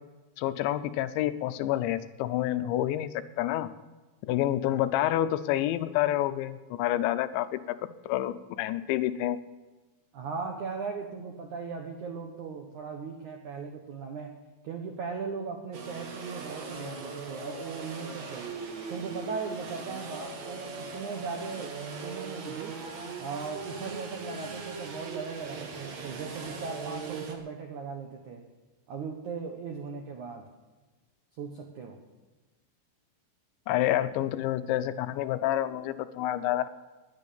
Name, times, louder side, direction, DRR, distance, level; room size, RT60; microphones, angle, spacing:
voice 1, 0.4-3.1 3.4-3.7 4.2-7.8 8.1-9.4 33.7-36.7, left 13 dB, 80° left, 12 dB, 2.9 m, -28 dB
voice 2, 10.1-14.4 14.6-18.5 18.9-22.8 23.2-28.4 28.9-30.5 31.4-32.0, right 5 dB, 70° right, 2 dB, 1.8 m, -38 dB
sound 1, 15.7-27.3, right 4 dB, 50° right, 2.3 m, -40 dB
20.5 x 9.9 x 7.0 m, 1.2 s
omnidirectional pair, 5.6 m